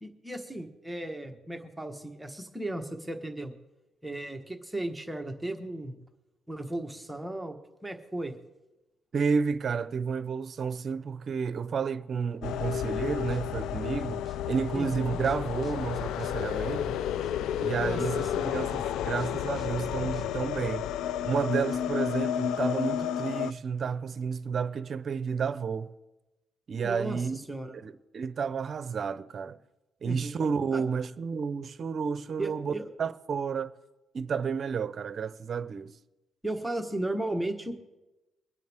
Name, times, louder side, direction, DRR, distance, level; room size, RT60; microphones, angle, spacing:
voice 1, 0.0-3.5 4.0-6.0 6.5-8.4 14.7-15.2 17.8-18.5 26.8-27.7 30.1-30.3 30.7-30.8 32.4-32.9 36.4-37.7, right 1 dB, 5° right, 1.3 m, -35 dB
voice 2, 9.1-17.0 17.6-18.2 18.5-20.9 21.2-25.9 26.7-27.4 27.8-29.6 30.0-33.7 34.1-35.9, right 6 dB, 50° right, 0.7 m, -31 dB
sound 1, 12.4-23.5, left 10 dB, 85° left, 0.3 m, -31 dB
sound 2, 12.8-20.6, right 4 dB, 30° right, 1.5 m, -51 dB
23.5 x 9.2 x 3.6 m
cardioid pair, 90°, 0 cm